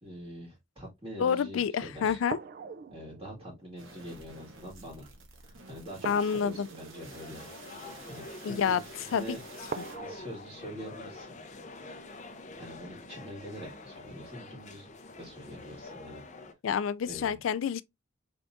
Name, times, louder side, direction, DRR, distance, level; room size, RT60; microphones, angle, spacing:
voice 1, 0.0-2.2 2.9-5.1 5.4-7.5 8.0-9.4 10.0-11.4 12.5-14.9 15.2-16.2 17.1-17.4, equal, 25° right, 1.9 m, -44 dB
voice 2, 1.2-2.4 6.0-6.7 8.4-8.8 9.1-9.2 16.6-17.8, left 7 dB, 80° left, 0.4 m, -28 dB
sound 1, 2.2-4.4 6.0-8.2 9.7-10.2, right 5 dB, 50° right, 0.4 m, -43 dB
sound 2, 3.8-10.0, right 3 dB, 85° right, 1.4 m, -51 dB
sound 3, 6.9-16.5, left 2 dB, 40° left, 0.7 m, -46 dB
4.9 x 3.4 x 2.5 m
head